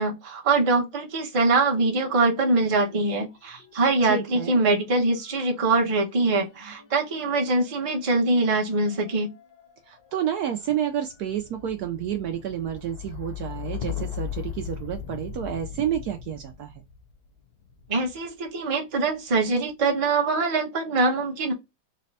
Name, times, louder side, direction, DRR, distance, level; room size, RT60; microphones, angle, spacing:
voice 1, 0.0-9.3 17.9-21.5, right 3 dB, 25° right, 0.7 m, -23 dB
sound 1, 1.7-3.1 3.3-18.4 19.1-19.7, left 9 dB, 65° left, 1.2 m, -40 dB
voice 2, 4.0-4.6 9.9-16.7, right 9 dB, 70° right, 1.0 m, -30 dB
4.1 x 2.2 x 4.0 m
omnidirectional pair, 1.9 m